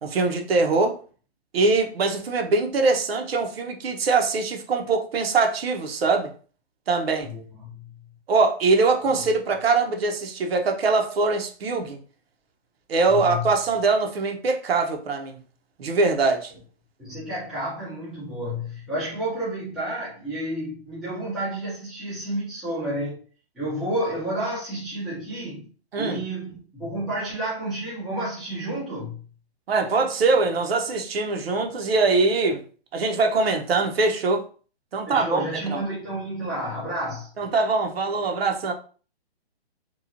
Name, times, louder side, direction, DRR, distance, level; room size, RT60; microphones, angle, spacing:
voice 1, 0.0-1.0 1.5-6.3 6.9-7.3 8.3-12.0 12.9-15.4 15.8-16.5 25.9-26.2 29.7-32.6 32.9-34.4 34.9-35.4 35.7-35.8 37.4-38.7, right 3 dB, 65° right, 0.8 m, -22 dB
voice 2, 7.2-7.9 13.1-13.5 17.0-23.2 23.5-25.7 26.0-29.2 35.1-37.3, right 1 dB, ahead, 0.6 m, -30 dB
2.9 x 2.3 x 2.5 m
hypercardioid pair, 160°, 32 cm